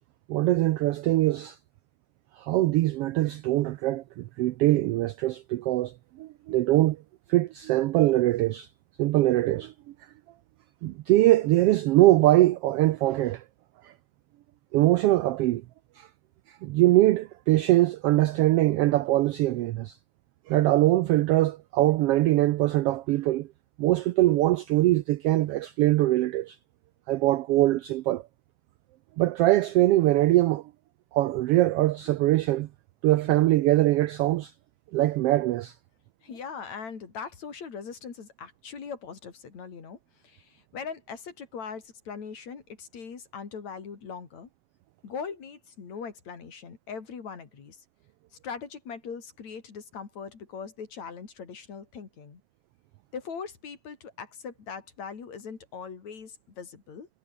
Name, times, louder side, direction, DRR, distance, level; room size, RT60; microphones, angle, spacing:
voice 1, 0.3-1.6 2.4-7.0 7.3-8.7 9.0-9.7 10.8-13.4 13.8-13.9 14.7-15.6 15.9-16.1 16.5-20.0 20.5-23.5 23.8-26.6 27.1-28.2 29.2-30.6 31.1-32.7 33.0-34.5 34.9-35.8, right 16 dB, 90° right, 1.3 m, -22 dB
voice 2, 36.2-40.0 40.2-44.5 45.0-47.8 48.4-52.4 53.1-57.1, left 6 dB, 70° left, 4.7 m, -40 dB
omnidirectional pair, 3.3 m